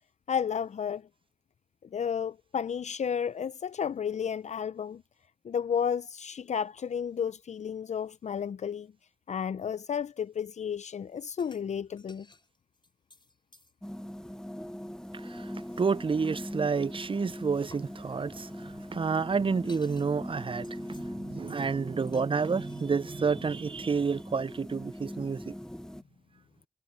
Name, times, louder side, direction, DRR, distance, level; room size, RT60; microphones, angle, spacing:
voice 1, 0.3-1.1 1.9-5.0 5.4-8.9 9.3-12.3, left 7 dB, 70° left, 0.4 m, -32 dB
sound 1, 11.4-11.7 12.0-13.7 15.8-16.0 17.7-17.9 19.0-19.1 19.4-20.1 20.4-21.1 21.5-21.7 22.1-23.5, left 2 dB, 40° left, 3.7 m, -57 dB
sound 2, 13.8-26.0, equal, 5° left, 0.6 m, -41 dB
voice 2, 15.1-25.5, right 5 dB, 45° right, 0.4 m, -30 dB
cardioid pair, 40°, 12 cm